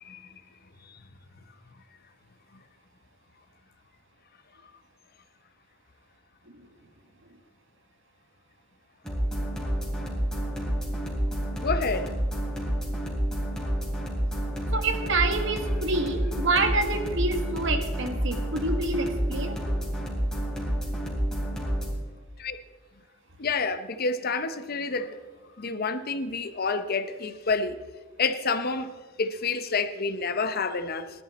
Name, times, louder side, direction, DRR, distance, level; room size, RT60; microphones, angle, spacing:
sound 1, 9.0-21.9, equal, 5° left, 3.4 m, -29 dB
voice 1, 11.6-12.1 22.4-22.6 23.4-25.2 25.6-27.8 28.2-28.9 29.2-31.1, left 4 dB, 50° left, 0.7 m, -28 dB
voice 2, 14.7-19.5, right 3 dB, 65° right, 1.5 m, -27 dB
19.0 x 12.0 x 4.2 m
head